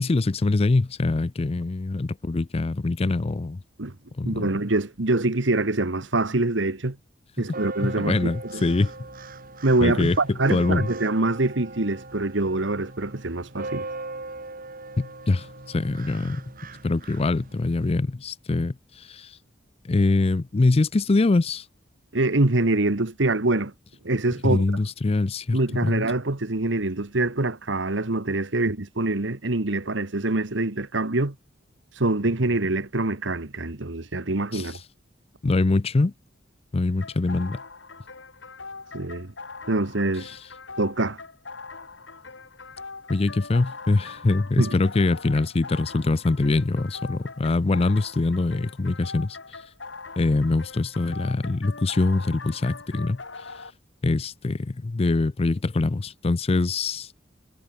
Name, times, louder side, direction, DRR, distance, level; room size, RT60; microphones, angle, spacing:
voice 1, 0.0-3.6 4.2-4.5 7.4-7.5 7.8-8.9 9.8-10.9 15.0-16.4 16.8-19.3 19.8-21.6 24.4-26.0 34.5-34.7 35.4-36.1 36.7-37.6 40.3-40.4 43.1-49.4 50.2-53.2 54.0-57.2, left 3 dB, 30° left, 0.5 m, -24 dB
voice 2, 4.2-7.0 7.4-8.6 9.6-13.9 22.1-23.7 24.0-24.6 25.5-31.3 32.0-34.8 38.9-39.3 39.7-40.3 40.8-41.2 44.6-44.8, right 2 dB, 70° right, 1.6 m, -25 dB
sound 1, 7.5-17.9, right 2 dB, 50° right, 6.0 m, -39 dB
sound 2, 37.0-53.7, left 4 dB, 70° left, 3.0 m, -41 dB
head